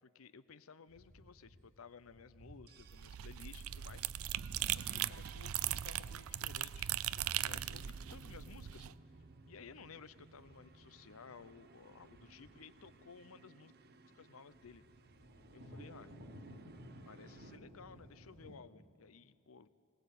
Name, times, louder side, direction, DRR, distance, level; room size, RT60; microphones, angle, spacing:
voice 1, 0.0-4.3 4.7-8.9 9.5-13.7 14.1-14.8 15.5-16.1 17.1-19.7, left 5 dB, 80° left, 15 dB, 0.7 m, -56 dB
sound 1, 0.9-2.9 3.3-3.4 3.8-18.6, equal, 70° right, 3.1 m, -59 dB
sound 2, 2.7-17.6, right 3 dB, 50° right, 0.8 m, -61 dB
sound 3, 2.8-8.9, right 12 dB, 90° right, 0.5 m, -39 dB
21.0 x 18.5 x 8.3 m, 2.4 s
head